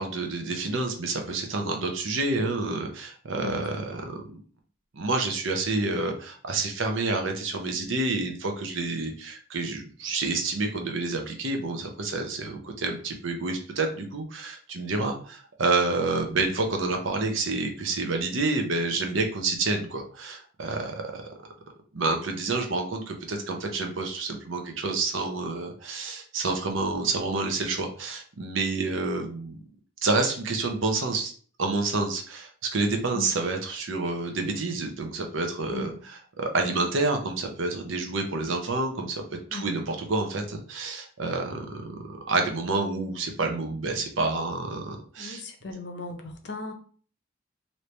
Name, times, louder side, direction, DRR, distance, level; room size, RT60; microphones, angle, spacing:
voice 1, 0.0-4.4 4.9-21.2 21.9-29.6 30.0-31.3 31.6-39.2 39.5-42.0 42.3-45.4, right 3 dB, 85° right, 0.7 m, -28 dB
voice 2, 3.4-3.8 33.1-33.3 35.7-36.0 39.5-39.8 45.2-46.7, left 2 dB, 60° left, 0.6 m, -37 dB
3.2 x 2.7 x 3.2 m
head